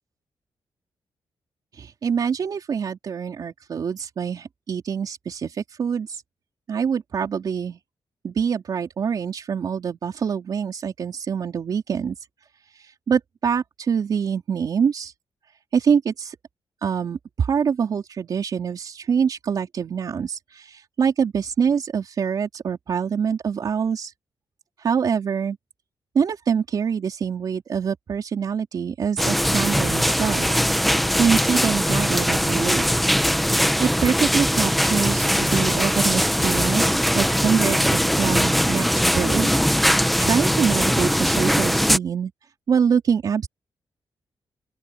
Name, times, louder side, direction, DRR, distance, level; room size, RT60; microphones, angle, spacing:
voice 1, 1.7-6.2 6.7-7.8 8.2-12.2 12.7-15.1 15.7-16.4 16.8-24.1 24.8-25.6 26.1-30.5 31.2-32.9 33.5-36.8 37.1-42.3 42.7-43.5, right 7 dB, 50° right, 3.9 m, -25 dB
sound 1, 29.2-42.0, equal, ahead, 0.9 m, -21 dB
open air
wide cardioid pair, 150°, 8 cm